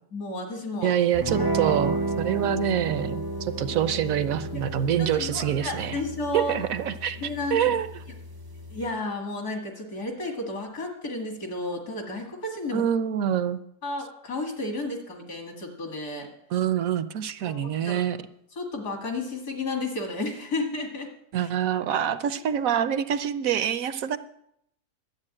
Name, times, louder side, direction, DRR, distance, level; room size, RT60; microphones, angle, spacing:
voice 1, 0.1-0.9 4.5-4.6 5.0-6.6 7.2-7.7 8.7-12.8 13.8-16.3 17.5-18.1 18.6-21.1 21.4-21.5, left 2 dB, 65° left, 2 dB, 2.5 m, -32 dB
voice 2, 0.8-6.0 6.3-7.2 7.5-8.0 12.7-13.6 16.5-18.2 21.3-24.2, right 9 dB, 65° right, 12 dB, 1.0 m, -26 dB
sound 1, 1.1-8.9, right 2 dB, 30° right, 0.4 m, -32 dB
12.5 x 7.9 x 8.8 m, 0.75 s
omnidirectional pair, 1.7 m